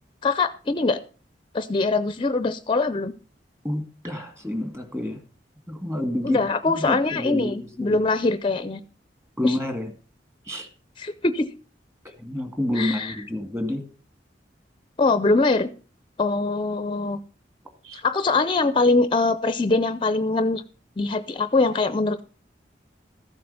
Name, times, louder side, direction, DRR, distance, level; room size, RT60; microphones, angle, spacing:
voice 1, 0.2-1.0 1.5-3.1 6.2-8.8 9.4-9.6 11.0-11.5 12.7-13.2 15.0-15.7 16.2-17.2 18.0-20.6 21.0-22.2, left 3 dB, 30° left, 13 dB, 0.6 m, -23 dB
voice 2, 3.6-5.2 5.7-6.4 6.6-7.6 7.9-8.0 9.4-9.9 10.5-10.7 12.2-13.8 17.8-18.0, left 1 dB, 15° right, 8 dB, 2.1 m, -28 dB
14.0 x 7.8 x 5.4 m, 0.35 s
head